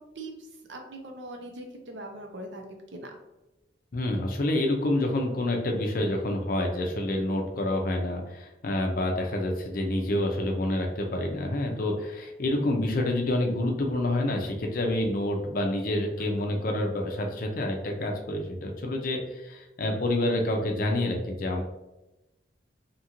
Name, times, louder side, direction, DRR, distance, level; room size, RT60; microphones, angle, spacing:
voice 1, 0.0-3.1, right 1 dB, 75° right, 3 dB, 0.6 m, -41 dB
voice 2, 3.9-21.6, left 1 dB, 50° left, 2 dB, 0.5 m, -28 dB
2.9 x 2.4 x 2.9 m, 0.98 s
head